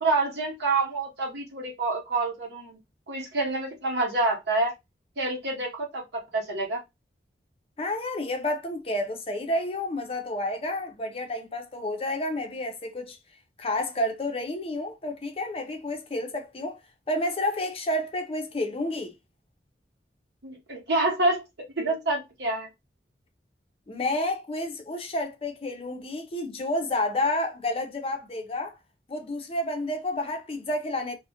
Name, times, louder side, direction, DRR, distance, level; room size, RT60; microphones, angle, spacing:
voice 1, 0.0-2.8 3.1-4.7 5.2-6.8 20.4-21.4 21.8-22.7, right 2 dB, 75° right, 0.9 m, -27 dB
voice 2, 7.8-13.2 13.6-16.8 17.1-19.1 23.9-28.7 29.1-31.2, left 1 dB, 30° left, 0.4 m, -30 dB
2.3 x 2.0 x 2.8 m
head